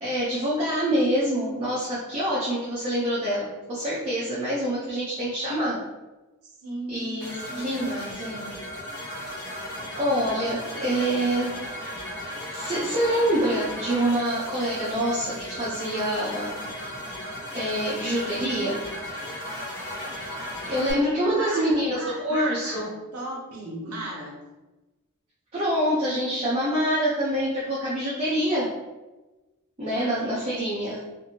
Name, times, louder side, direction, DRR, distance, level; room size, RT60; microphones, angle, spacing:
voice 1, 0.0-5.8 6.9-8.5 10.0-11.5 12.5-16.6 17.5-18.8 20.7-22.9 25.5-28.7 29.8-31.0, equal, 30° right, -9 dB, 0.6 m, -26 dB
voice 2, 6.6-7.9 20.7-24.4, right 1 dB, 80° right, -3 dB, 0.7 m, -36 dB
sound 1, 7.2-20.9, equal, 15° left, 0.9 m, -36 dB
2.7 x 2.6 x 2.7 m, 1.1 s
head